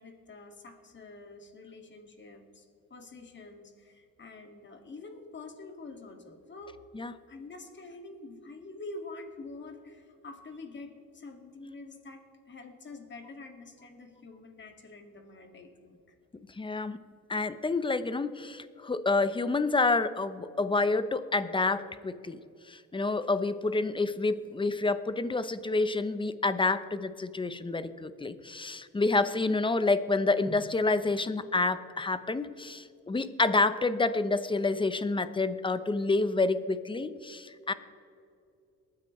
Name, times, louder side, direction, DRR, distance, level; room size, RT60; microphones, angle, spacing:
voice 1, 0.0-2.6 2.9-6.8 7.3-16.0, left 3 dB, 40° left, 4 dB, 2.2 m, -46 dB
voice 2, 16.6-17.0 17.3-22.4 22.7-37.7, left 3 dB, 15° left, 12 dB, 0.8 m, -28 dB
22.5 x 9.7 x 3.2 m, 2.5 s
cardioid pair, 90°, 30 cm